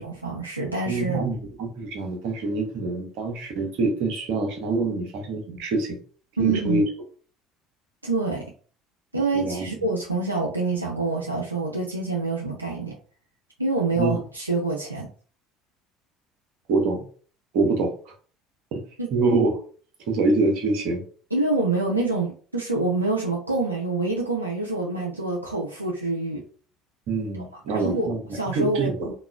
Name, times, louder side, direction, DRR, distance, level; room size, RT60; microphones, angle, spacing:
voice 1, 0.0-1.2 6.4-6.9 8.0-8.5 9.1-13.0 13.6-15.1 19.0-19.1 21.3-26.4 27.3-29.1, right 3 dB, 90° right, -2 dB, 0.3 m, -26 dB
voice 2, 0.9-6.0 6.4-6.8 9.3-9.6 14.0-14.2 16.7-17.1 17.5-18.1 18.7-18.8 19.1-19.6 20.1-21.0 27.1-28.2 28.5-29.1, right 3 dB, 55° right, 4 dB, 0.7 m, -25 dB
2.9 x 2.2 x 2.3 m, 0.42 s
figure-of-eight pair, 60°, 0 cm